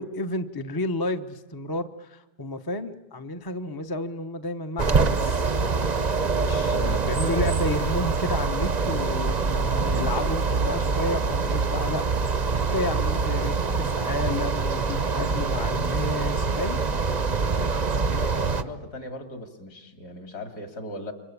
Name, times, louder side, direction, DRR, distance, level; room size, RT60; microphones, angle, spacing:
voice 1, 0.0-5.5 6.4-16.8, left 2 dB, 20° left, 7 dB, 0.7 m, -31 dB
sound 1, 4.8-18.6, right 4 dB, 35° right, 0.7 m, -25 dB
voice 2, 6.7-7.0 17.5-21.1, left 1 dB, 60° left, 6 dB, 3.2 m, -38 dB
28.5 x 24.5 x 8.5 m, 1.1 s
omnidirectional pair, 1.9 m